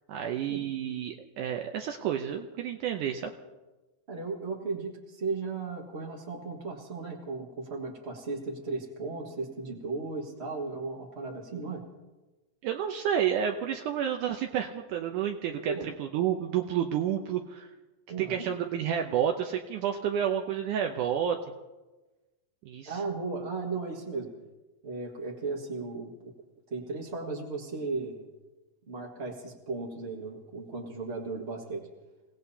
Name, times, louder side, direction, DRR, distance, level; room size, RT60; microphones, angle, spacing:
voice 1, 0.1-3.3 12.6-17.7 18.2-21.4 22.7-23.0, right 9 dB, 75° right, 4 dB, 2.1 m, -30 dB
voice 2, 4.1-11.8 15.6-15.9 18.1-18.5 22.8-24.3 24.8-26.3 26.7-28.2 28.9-31.9, right 3 dB, 40° right, -1 dB, 0.9 m, -36 dB
29.0 x 17.0 x 2.8 m, 1.2 s
omnidirectional pair, 4.0 m